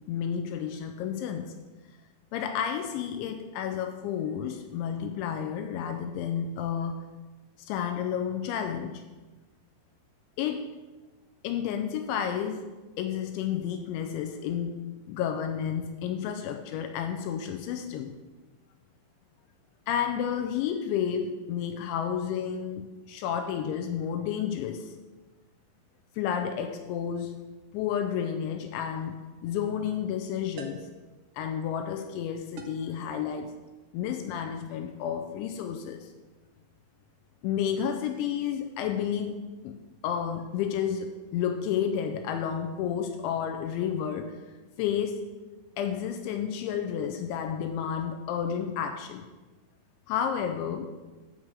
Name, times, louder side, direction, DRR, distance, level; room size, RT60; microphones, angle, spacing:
voice 1, 0.1-1.5 2.3-7.0 7.6-9.0 10.4-10.7 11.4-18.1 19.9-24.9 26.2-27.5 27.7-29.2 29.4-30.9 31.4-33.6 33.9-36.1 37.4-39.8 40.0-44.4 44.8-45.2 45.8-49.2 50.1-50.9, left 8 dB, 85° left, 6 dB, 2.7 m, -31 dB
sound 1, 28.9-29.2 30.6-31.0 32.6-33.0, right 4 dB, 75° right, 2.7 m, -45 dB
9.6 x 4.8 x 7.4 m, 1.2 s
omnidirectional pair, 5.7 m